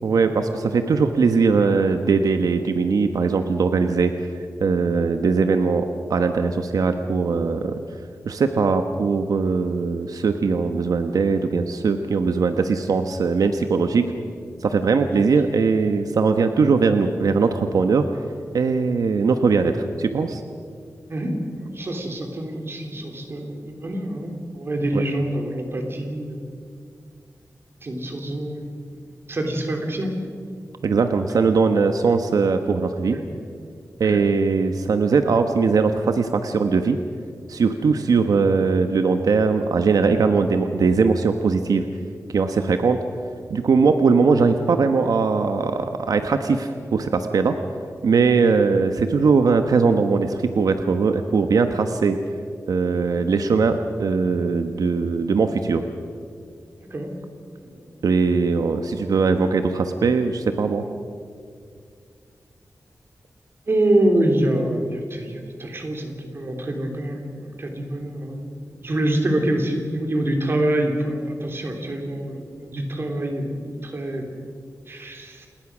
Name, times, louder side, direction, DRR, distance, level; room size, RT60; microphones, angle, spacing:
voice 1, 0.0-4.1 4.6-7.8 8.2-14.1 14.6-18.1 18.5-20.4 24.9-25.0 30.8-33.2 34.0-37.0 37.5-41.8 42.3-43.0 43.5-47.5 48.0-52.2 52.7-55.8 58.0-60.8, right 4 dB, 90° right, 7 dB, 1.1 m, -20 dB
voice 2, 21.1-26.5 27.8-28.7 29.3-30.1 33.1-33.2 34.0-34.2 56.9-57.1 57.6-57.9 63.7-68.5 68.8-74.3 74.9-75.5, right 1 dB, 40° right, 3 dB, 3.5 m, -26 dB
28.5 x 20.5 x 6.2 m, 2.2 s
wide cardioid pair, 160°, 6 cm